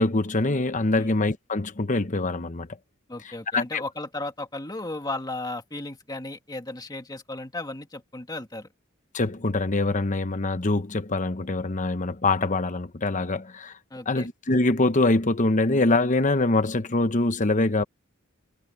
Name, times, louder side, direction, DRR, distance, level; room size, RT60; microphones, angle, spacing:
voice 1, 0.0-2.7 3.5-3.8 9.1-13.7 14.1-17.8, left 2 dB, 40° left, 1.0 m, -24 dB
voice 2, 3.1-8.7 13.9-14.3, left 2 dB, 20° left, 2.0 m, -35 dB
head